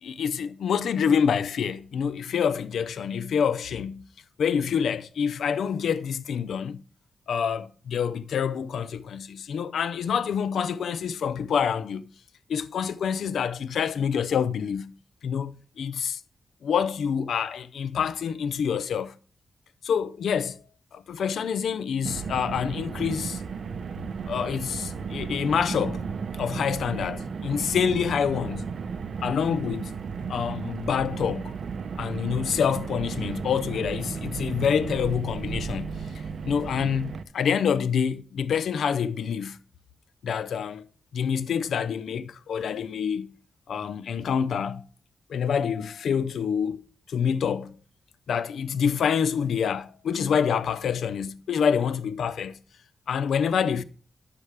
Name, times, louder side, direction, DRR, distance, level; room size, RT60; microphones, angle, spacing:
voice 1, 0.0-4.0 4.4-6.8 7.3-12.0 12.5-14.9 15.2-16.2 16.6-19.1 19.8-20.6 20.9-23.4 24.3-26.0 26.4-28.7 29.2-29.9 30.3-31.5 32.0-39.6 40.2-40.8 41.1-43.3 43.7-44.8 45.3-46.8 47.1-47.7 48.3-52.6 53.1-53.8, left 7 dB, 90° left, 0.5 m, -27 dB
Car, 22.0-37.2, right 5 dB, 70° right, 0.6 m, -34 dB
9.7 x 7.4 x 3.3 m
cardioid pair, 75°, 0 cm